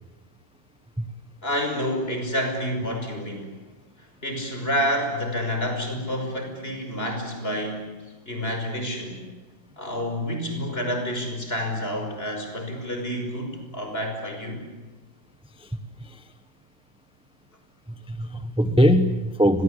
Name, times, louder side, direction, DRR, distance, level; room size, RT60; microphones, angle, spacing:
voice 1, 1.4-3.6 4.2-7.9 8.3-9.3 9.8-14.6, equal, 30° left, 4 dB, 6.1 m, -29 dB
voice 2, 15.6-16.3 17.9-19.6, equal, 5° right, 9 dB, 0.7 m, -22 dB
30.0 x 23.5 x 8.2 m, 1.2 s
omnidirectional pair, 2.1 m